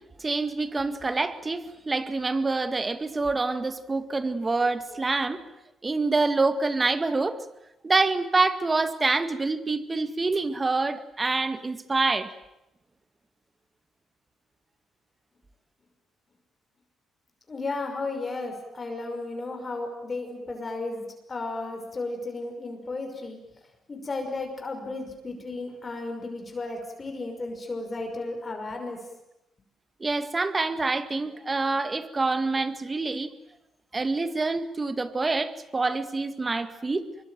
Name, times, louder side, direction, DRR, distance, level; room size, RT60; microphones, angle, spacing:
voice 1, 0.2-5.4 5.8-7.4 7.8-12.3 30.0-33.3 33.9-37.1, right 3 dB, 25° right, 2.0 m, -26 dB
voice 2, 17.5-23.4 23.9-29.0, left 3 dB, 30° left, 5.7 m, -34 dB
25.0 x 23.0 x 9.3 m
cardioid pair, 90°, 0 cm